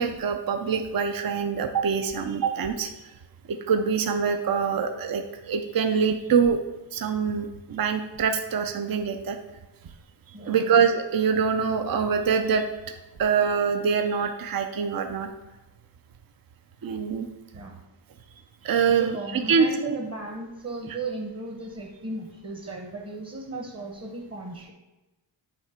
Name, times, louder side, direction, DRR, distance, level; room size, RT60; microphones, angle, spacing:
voice 1, 0.0-2.9 3.5-6.6 6.9-9.4 10.3-12.6 13.2-15.3 16.8-17.3 18.6-19.2 19.5-20.0, right 6 dB, 50° right, 6 dB, 0.6 m, -24 dB
voice 2, 10.3-10.8 17.5-17.8 18.9-24.7, right 2 dB, 30° right, 1 dB, 1.1 m, -36 dB
8.2 x 3.3 x 5.0 m, 1.1 s
wide cardioid pair, 75°, 46 cm